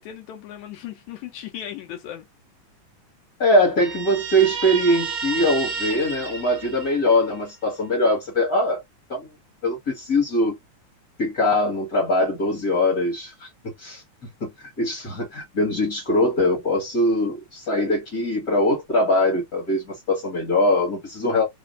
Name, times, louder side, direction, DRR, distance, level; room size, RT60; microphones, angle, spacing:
voice 1, 0.0-2.3, left 11 dB, 75° left, 1.8 m, -37 dB
voice 2, 3.4-8.8 9.1-9.3 9.6-10.5 11.2-14.0 14.4-21.4, left 1 dB, 45° left, 1.2 m, -22 dB
Guitar, 3.8-7.4, right 5 dB, 65° right, 1.7 m, -31 dB
5.0 x 2.4 x 2.4 m
omnidirectional pair, 3.7 m